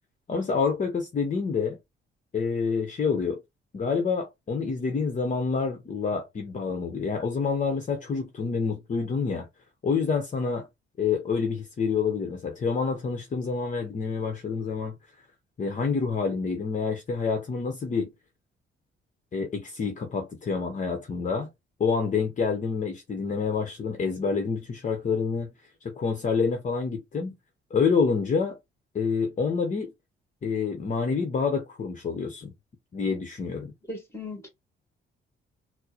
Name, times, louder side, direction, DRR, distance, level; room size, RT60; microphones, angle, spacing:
voice 1, 0.3-1.8 2.3-3.4 3.7-9.5 9.8-10.7 11.0-14.9 15.6-18.1 19.3-21.5 21.8-25.5 25.8-27.3 27.7-28.6 28.9-29.9 30.4-32.5 32.9-33.7, left 5 dB, 40° left, 0.9 m, -27 dB
voice 2, 33.9-34.5, left 2 dB, 15° left, 1.8 m, -37 dB
4.3 x 2.0 x 2.9 m
cardioid pair, 90°, 20 cm